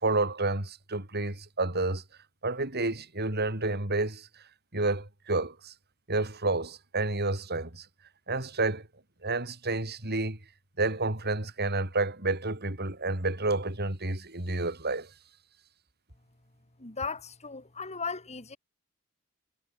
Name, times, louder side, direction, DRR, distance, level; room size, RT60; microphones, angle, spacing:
voice 1, 0.0-2.0 2.4-4.3 4.7-5.7 6.1-7.9 8.3-8.9 9.2-10.4 10.8-15.1, right 2 dB, 50° right, 5.0 m, -30 dB
voice 2, 16.8-18.6, left 4 dB, 30° left, 3.4 m, -37 dB
head